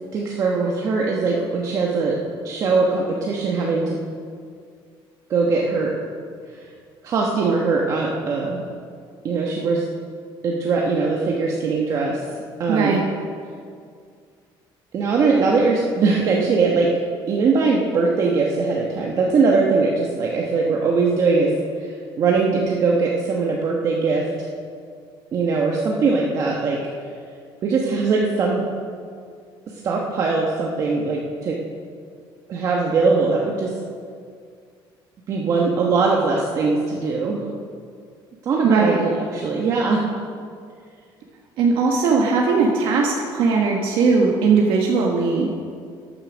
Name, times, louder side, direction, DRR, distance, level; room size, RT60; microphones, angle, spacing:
voice 1, 0.1-2.2 2.4-4.0 5.3-5.9 6.5-6.7 7.0-8.6 9.2-9.9 10.4-12.2 12.6-13.0 14.9-16.9 17.3-21.5 21.8-24.5 25.3-26.8 27.6-28.6 29.8-31.6 32.5-33.7 35.3-37.4 38.4-40.0, right 4 dB, 35° right, -2 dB, 1.1 m, -21 dB
voice 2, 12.7-13.0 38.6-39.0 41.6-45.6, right 4 dB, 60° right, 0 dB, 1.3 m, -19 dB
13.5 x 8.7 x 6.1 m, 2.2 s
cardioid pair, 180°, 10 cm